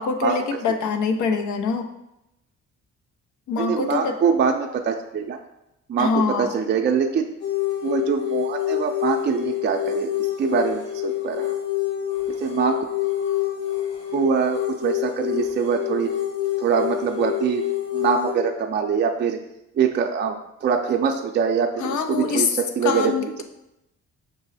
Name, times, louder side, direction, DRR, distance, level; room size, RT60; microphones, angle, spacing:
voice 1, 0.0-1.9 3.5-4.1 6.0-6.5 21.8-22.5 22.8-23.4, left 5 dB, 75° left, 5 dB, 0.6 m, -24 dB
voice 2, 3.6-5.4 5.9-7.3 7.8-11.5 12.3-12.9 14.1-16.1 16.6-17.6 17.9-19.4 19.7-20.4 20.6-23.4, right 6 dB, 35° right, 3 dB, 0.4 m, -23 dB
sound 1, 7.4-18.3, left 12 dB, 60° left, 1.5 m, -27 dB
6.0 x 2.0 x 4.0 m, 0.86 s
cardioid pair, 90°, 30 cm